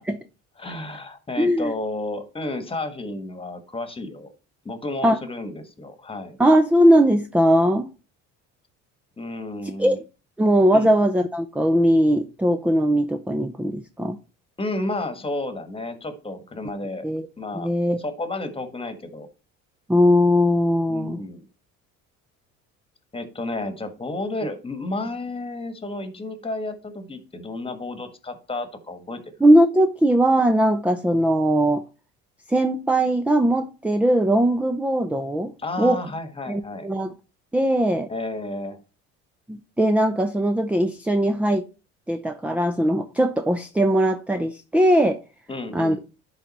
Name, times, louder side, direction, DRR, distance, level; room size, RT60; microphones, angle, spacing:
voice 1, 0.6-4.3 4.6-6.4 9.2-10.0 10.7-10.9 14.6-17.1 17.4-17.7 18.0-19.3 20.9-21.5 23.1-29.2 35.6-36.9 38.1-38.8 45.5-46.0, left 2 dB, 15° left, 1.4 m, -32 dB
voice 2, 1.4-1.7 5.0-5.2 6.4-7.9 9.8-10.0 10.4-14.2 17.0-17.3 17.5-18.0 19.9-21.2 29.4-31.8 32.5-35.5 35.8-36.0 36.5-37.1 37.5-38.1 39.5-41.7 42.1-45.2 45.7-46.0, equal, 5° right, 0.5 m, -19 dB
11.0 x 4.0 x 4.2 m
supercardioid pair, 95°, 32 cm